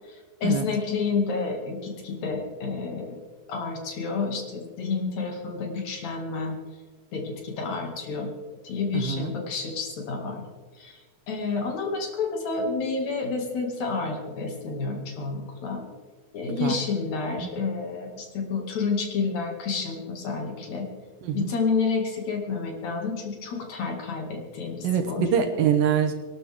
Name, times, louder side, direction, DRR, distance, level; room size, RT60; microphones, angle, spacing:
voice 1, 0.4-3.2 3.5-6.6 7.1-8.3 8.6-10.4 10.8-11.0 11.3-15.8 16.3-20.9 21.3-25.2, left 4 dB, 50° left, 1 dB, 3.3 m, -29 dB
voice 2, 8.9-9.3 16.6-16.8 17.4-17.5 21.2-21.5 24.8-26.1, right 8 dB, 75° right, 6 dB, 2.6 m, -24 dB
23.5 x 12.0 x 3.6 m, 1.4 s
omnidirectional pair, 4.4 m